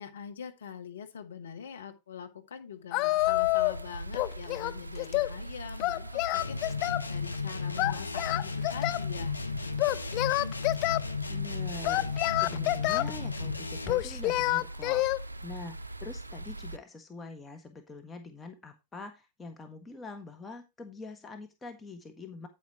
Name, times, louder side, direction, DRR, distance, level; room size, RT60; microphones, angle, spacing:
voice 1, 0.0-9.4, left 7 dB, 65° left, 6 dB, 1.6 m, -44 dB
Singing, 2.9-3.8 4.1-5.3 5.8-7.1 7.8-9.1 9.8-11.0 11.8-13.1 13.9-15.2, left 20 dB, 40° left, 0.5 m, -28 dB
sound 1, 3.2-16.8, right 2 dB, 80° right, 0.4 m, -41 dB
sound 2, 6.3-14.1, left 5 dB, 85° left, 0.8 m, -35 dB
voice 2, 11.3-22.5, left 3 dB, 15° left, 4 dB, 1.6 m, -44 dB
9.3 x 8.7 x 3.0 m, 0.23 s
figure-of-eight pair, 90°, 0 cm